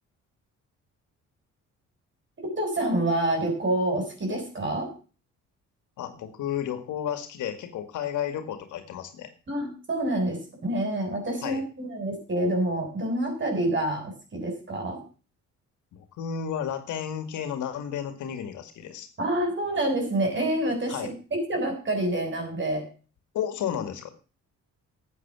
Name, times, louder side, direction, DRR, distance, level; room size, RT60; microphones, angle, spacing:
voice 1, 2.4-4.9 9.5-15.0 19.2-22.8, right 1 dB, 40° right, 2 dB, 6.8 m, -27 dB
voice 2, 6.0-9.3 11.4-11.6 15.9-19.1 20.9-21.1 23.3-24.1, left 9 dB, 80° left, 8 dB, 2.1 m, -32 dB
12.5 x 8.3 x 6.2 m, 0.37 s
cardioid pair, 90°, 30 cm